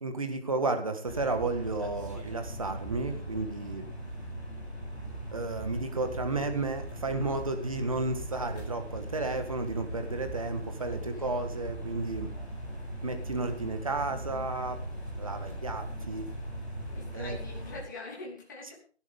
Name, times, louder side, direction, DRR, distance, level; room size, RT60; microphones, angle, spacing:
voice 1, 0.0-3.8 5.3-12.3 13.0-14.8 15.2-16.3 17.1-17.4, right 3 dB, 30° right, 7 dB, 1.8 m, -32 dB
sound 1, 1.1-17.8, right 1 dB, ahead, 3.2 m, -39 dB
voice 2, 11.1-11.5 16.9-18.8, left 3 dB, 15° left, -3 dB, 3.1 m, -44 dB
18.5 x 11.5 x 3.7 m, 0.42 s
figure-of-eight pair, 170°, 34 cm